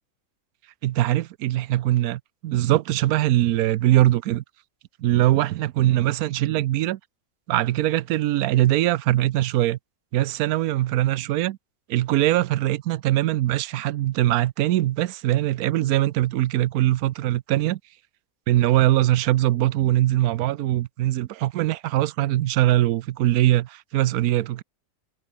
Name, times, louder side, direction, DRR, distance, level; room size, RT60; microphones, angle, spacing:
voice 1, 0.8-4.4 5.0-7.0 7.5-9.8 10.1-11.6 11.9-17.8 18.5-24.6, right 14 dB, 85° right, 1.1 m, -22 dB
omnidirectional pair, 1.5 m